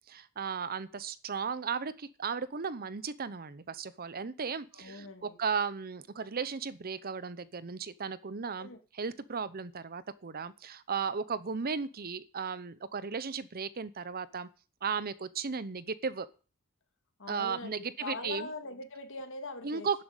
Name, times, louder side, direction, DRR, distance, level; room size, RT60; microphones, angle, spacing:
voice 1, 0.1-14.5 14.8-16.3 17.3-18.5 19.6-20.0, right 5 dB, 40° right, 16 dB, 0.8 m, -35 dB
voice 2, 4.7-5.3 8.6-8.8 17.2-20.0, left 3 dB, 60° left, 6 dB, 2.5 m, -42 dB
11.5 x 7.8 x 9.0 m, 0.36 s
head